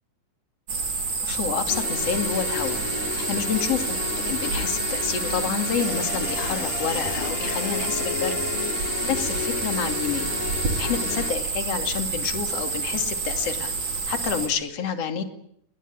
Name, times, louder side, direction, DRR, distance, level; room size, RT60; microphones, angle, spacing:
sound 1, 0.7-14.5, right 4 dB, 70° right, 5.9 m, -29 dB
voice 1, 1.2-2.8 3.1-4.0 4.3-8.4 9.0-10.3 10.8-13.7 14.1-15.2, left 7 dB, 55° left, 5 dB, 3.5 m, -28 dB
sound 2, 1.7-11.3, left 6 dB, 80° left, 4.3 m, -32 dB
28.5 x 21.0 x 8.6 m, 0.73 s
omnidirectional pair, 3.5 m